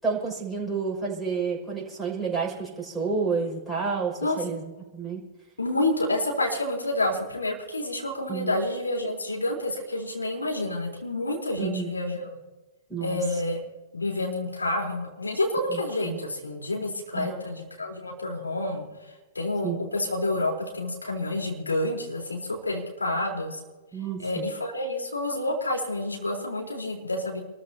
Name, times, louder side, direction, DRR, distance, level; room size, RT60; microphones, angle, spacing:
voice 1, 0.0-4.6 4.9-5.2 8.3-8.6 11.6-11.9 12.9-13.2 16.0-16.2 17.1-17.4 19.6-19.8 23.9-24.5, right 5 dB, ahead, 0 dB, 5.9 m, -30 dB
voice 2, 5.6-12.3 13.0-13.6 13.9-18.9 19.3-23.6 24.2-27.4, left 1 dB, 90° left, 0 dB, 3.9 m, -29 dB
28.5 x 14.0 x 2.9 m, 1.2 s
figure-of-eight pair, 110°, 0 cm